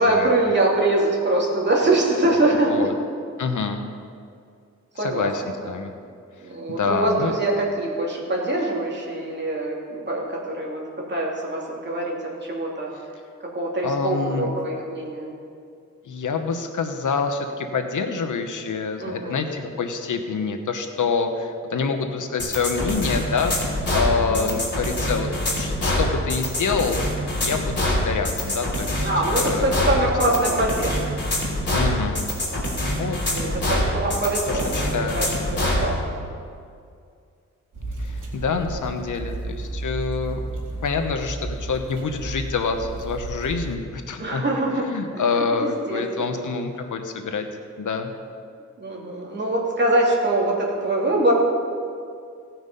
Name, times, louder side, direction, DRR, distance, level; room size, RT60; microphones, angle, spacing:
voice 1, 0.0-2.9 5.0-5.3 6.4-10.8 11.1-12.1 12.4-12.9 13.5-15.3 19.0-19.4 24.3-24.5 29.0-31.2 33.3-35.9 36.2-36.3 44.2-44.8 45.3-46.4 48.8-51.3, right 2 dB, 35° right, -3 dB, 2.7 m, -23 dB
voice 2, 3.4-3.8 5.0-5.9 6.7-7.3 13.8-14.5 16.1-23.5 23.9-27.1 27.4-30.1 30.5-30.6 31.7-32.2 32.9-33.2 34.5-35.2 38.1-40.4 40.8-44.4 44.7-47.5 47.8-48.1, left 5 dB, 75° left, 6 dB, 1.0 m, -26 dB
sound 1, 22.4-35.9, left 1 dB, 35° left, 3.1 m, -24 dB
sound 2, 37.7-43.8, right 2 dB, 85° right, 2.8 m, -33 dB
17.0 x 6.1 x 5.3 m, 2.3 s
wide cardioid pair, 90°, 31 cm